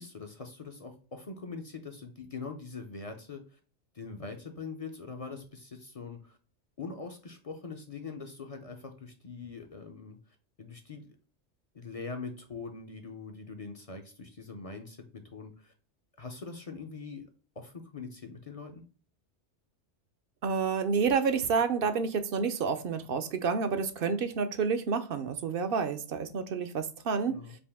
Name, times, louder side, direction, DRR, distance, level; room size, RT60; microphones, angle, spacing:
voice 1, 0.0-3.6 3.9-6.4 6.8-10.2 10.6-11.2 11.7-15.7 16.2-17.3 17.6-18.8 27.3-27.6, left 4 dB, 45° left, 5 dB, 0.5 m, -43 dB
voice 2, 20.4-27.4, right 5 dB, 60° right, 9 dB, 0.7 m, -29 dB
5.2 x 2.5 x 3.4 m, 0.40 s
omnidirectional pair, 1.2 m